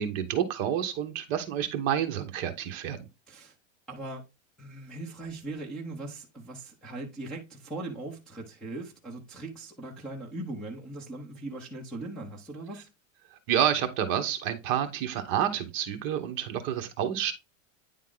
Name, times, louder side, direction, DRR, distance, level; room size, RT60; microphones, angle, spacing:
voice 1, 0.0-3.0 13.3-17.3, right 9 dB, 30° right, 0.9 m, -29 dB
voice 2, 3.9-4.2 4.6-12.9, right 2 dB, ahead, 0.6 m, -39 dB
9.6 x 3.6 x 3.7 m
supercardioid pair, 180°, 40 cm